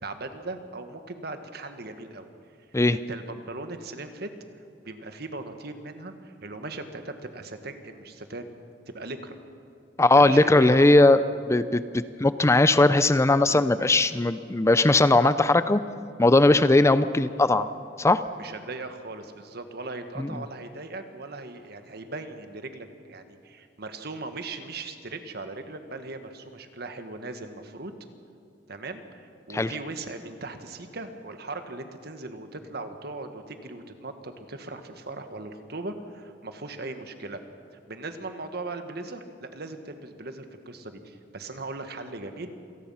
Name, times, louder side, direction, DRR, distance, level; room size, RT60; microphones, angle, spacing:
voice 1, 0.0-2.3 2.9-4.3 4.8-8.5 8.9-9.3 10.2-11.1 18.4-27.9 28.7-37.4 37.7-42.5, right 2 dB, 60° right, 7 dB, 1.6 m, -38 dB
voice 2, 10.0-11.2 11.5-15.8 16.2-17.7 18.0-18.2 29.5-29.7, left 2 dB, 15° left, 13 dB, 0.5 m, -19 dB
27.0 x 18.0 x 5.7 m, 2.6 s
head